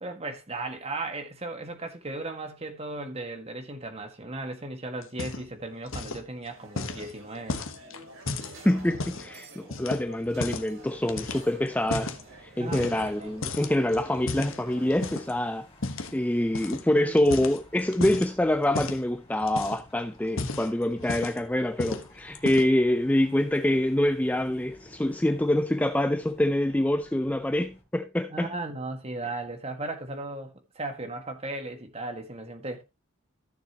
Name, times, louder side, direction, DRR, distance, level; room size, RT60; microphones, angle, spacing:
voice 1, 0.0-7.6 12.6-13.3 16.9-17.2 28.3-32.8, right 2 dB, 30° right, 1.8 m, -36 dB
sound 1, 5.0-5.6 5.9-6.3 6.8-9.3 9.7-10.7 11.1-12.2 12.7-13.2 13.4-15.3 15.8-16.1 16.5-16.8 17.2-18.3 18.7-19.0 19.4-19.9 20.2-21.5 21.8-22.1 22.3-22.8, left 3 dB, 70° left, 1.2 m, -34 dB
sound 2, 6.5-15.4, right 2 dB, 75° right, 4.1 m, -50 dB
voice 2, 8.6-15.7 16.1-28.5, left 1 dB, 5° left, 0.4 m, -26 dB
sound 3, 10.8-27.8, left 1 dB, 30° left, 3.7 m, -55 dB
14.5 x 7.0 x 2.9 m
head